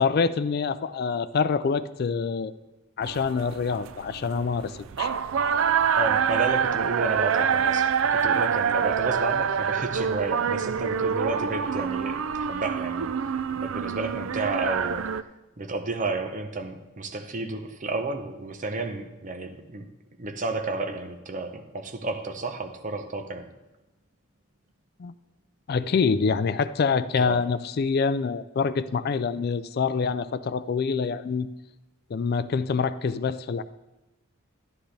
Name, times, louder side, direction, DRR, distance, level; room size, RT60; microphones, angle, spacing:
voice 1, 0.0-2.5 3.0-5.1 25.0-25.1 25.7-31.5 32.1-33.6, left 5 dB, 50° left, 14 dB, 0.3 m, -26 dB
sound 1, 3.0-15.2, right 7 dB, 75° right, 0.4 m, -26 dB
voice 2, 5.9-15.2 15.6-19.9 20.2-23.5 27.2-27.4, right 2 dB, 40° right, 5 dB, 0.7 m, -32 dB
11.5 x 11.0 x 3.3 m, 1.0 s
head